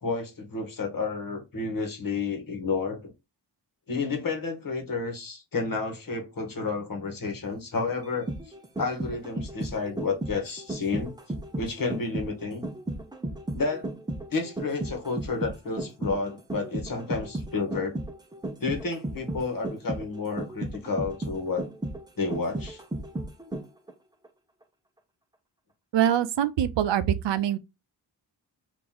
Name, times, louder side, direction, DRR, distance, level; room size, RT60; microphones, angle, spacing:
voice 1, 0.0-3.1 3.9-8.3 8.8-11.1 11.6-12.6 13.5-13.9 14.3-18.0 18.6-21.7 22.2-22.8, left 4 dB, 50° left, 1.3 m, -31 dB
sound 1, 8.0-23.9 24.2-24.3, right 1 dB, 10° right, 0.5 m, -34 dB
voice 2, 25.9-27.6, right 10 dB, 75° right, 0.5 m, -24 dB
2.9 x 2.6 x 3.8 m
wide cardioid pair, 105°, 43 cm